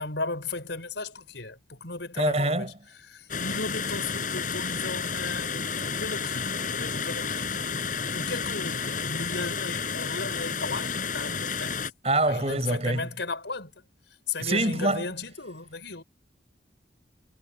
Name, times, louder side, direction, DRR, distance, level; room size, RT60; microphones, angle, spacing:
voice 1, 0.0-2.7 3.0-11.9 12.2-13.7 14.3-16.0, left 3 dB, 75° left, 5.1 m, -36 dB
voice 2, 2.2-2.7 12.0-13.1 14.4-15.0, right 2 dB, 35° right, 5.3 m, -25 dB
sound 1, 3.3-11.9, left 5 dB, 45° left, 4.6 m, -31 dB
head